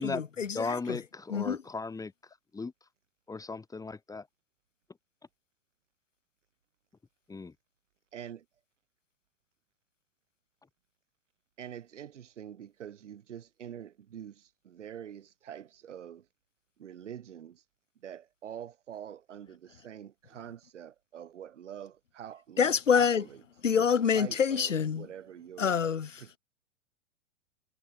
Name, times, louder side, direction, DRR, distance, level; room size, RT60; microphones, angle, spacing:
voice 1, 0.0-1.0 1.3-1.6 22.6-23.2 23.6-25.1 25.6-26.2, left 7 dB, 85° left, 2.1 m, -27 dB
voice 2, 0.5-2.1 2.5-2.7 3.3-4.3 7.3-7.5, left 4 dB, 10° left, 1.4 m, -36 dB
voice 3, 8.1-8.4 11.6-16.3 16.8-17.6 18.0-23.4 23.7-23.9 24.1-25.8 26.2-26.4, right 9 dB, 75° right, 4.4 m, -45 dB
hypercardioid pair, 105°, 37 cm